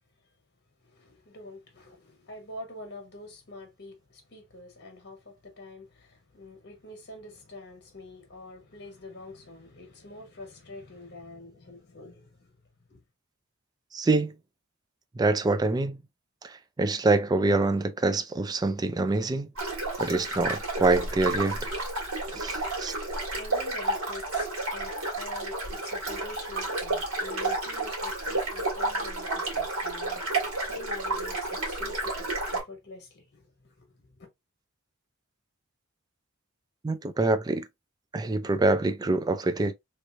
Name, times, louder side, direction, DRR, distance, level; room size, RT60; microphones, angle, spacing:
voice 1, 0.9-12.5 12.9-13.0 23.3-33.5 33.8-33.9, left 2 dB, 55° left, 1.4 m, -45 dB
voice 2, 13.9-14.3 15.1-16.0 16.4-19.5 20.0-21.8 22.3-22.9 36.8-37.7 38.1-39.7, right 2 dB, 20° right, 0.3 m, -25 dB
sound 1, 19.6-32.6, right 2 dB, 80° right, 1.8 m, -31 dB
3.2 x 3.0 x 2.4 m
head